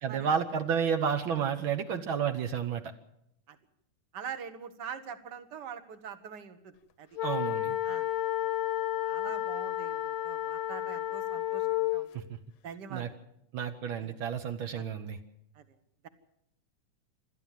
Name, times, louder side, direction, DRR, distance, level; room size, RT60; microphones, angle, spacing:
voice 1, 0.0-2.8 7.2-7.8 12.1-12.2 12.9-13.1 13.5-15.2, right 7 dB, 85° right, 6 dB, 1.1 m, -31 dB
voice 2, 4.1-6.7 7.0-7.1 7.8-8.1 9.0-12.3 12.6-13.2 14.0-14.2 14.7-14.8 15.5-15.6, right 7 dB, 55° right, 9 dB, 1.2 m, -44 dB
sound 1, 7.2-12.1, left 13 dB, 70° left, 1.9 m, -31 dB
27.0 x 13.0 x 7.5 m, 0.80 s
omnidirectional pair, 3.7 m